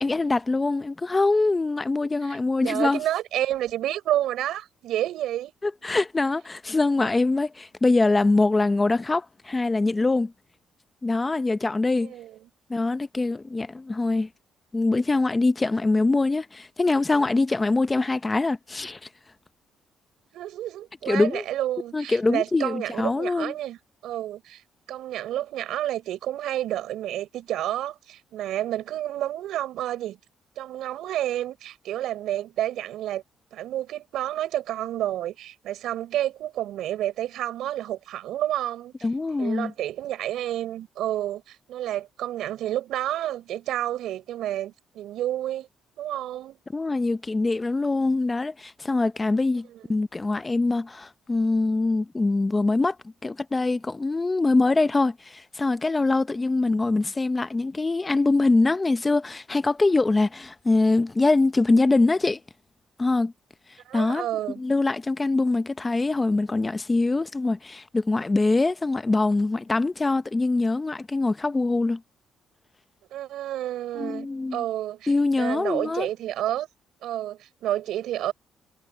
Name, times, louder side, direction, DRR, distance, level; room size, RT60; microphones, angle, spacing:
voice 1, 0.0-3.0 5.6-10.3 11.0-12.1 12.7-14.3 14.7-19.0 21.1-21.4 21.9-23.5 39.0-39.7 46.7-53.0 53.2-62.4 63.0-63.3 63.9-64.3 64.6-72.0 74.0-74.6 75.1-76.1, left 3 dB, 20° left, 0.7 m, -23 dB
voice 2, 2.6-5.5 12.0-12.4 20.3-30.2 30.6-33.2 33.5-38.9 39.4-45.7 46.0-46.6 63.9-64.6 73.1-76.7 77.0-78.3, right 13 dB, 80° right, 6.1 m, -30 dB
cardioid pair, 110°, 0 cm